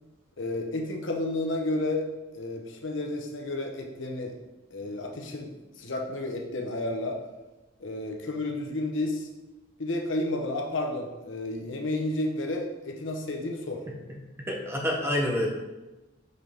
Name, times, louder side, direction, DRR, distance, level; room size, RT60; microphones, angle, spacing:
voice 1, 0.4-2.1 2.3-4.3 4.7-7.2 7.8-9.3 9.8-13.8, left 2 dB, 75° left, 1 dB, 1.0 m, -31 dB
voice 2, 14.4-15.5, left 1 dB, 10° right, -1 dB, 1.1 m, -27 dB
6.5 x 5.3 x 3.5 m, 1.1 s
head